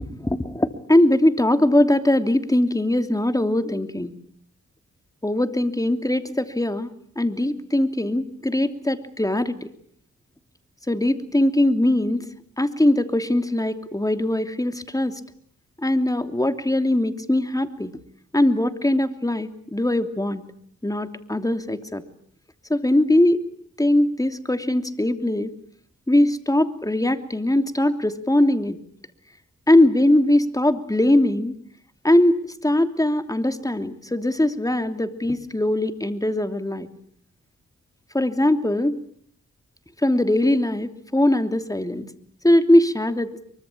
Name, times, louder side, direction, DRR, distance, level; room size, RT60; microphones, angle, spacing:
voice 1, 0.2-4.1 5.2-9.7 10.9-12.2 12.6-15.2 15.8-17.9 18.3-20.4 20.8-22.0 22.7-23.4 23.8-25.5 26.1-28.8 29.7-31.5 32.0-36.9 38.1-39.0 40.0-42.0 42.4-43.4, left 1 dB, 10° left, 8 dB, 3.0 m, -21 dB
24.5 x 24.0 x 8.7 m, 0.64 s
cardioid pair, 55°, 30 cm